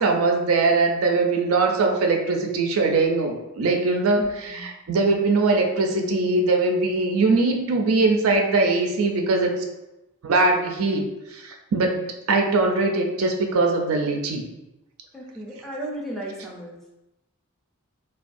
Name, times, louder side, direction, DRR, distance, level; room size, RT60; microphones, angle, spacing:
voice 1, 0.0-9.6 10.2-14.4, right 3 dB, 80° right, 3 dB, 0.4 m, -21 dB
voice 2, 4.2-4.7 15.1-16.9, right 1 dB, ahead, -3 dB, 0.4 m, -35 dB
3.3 x 2.2 x 2.5 m, 0.96 s
head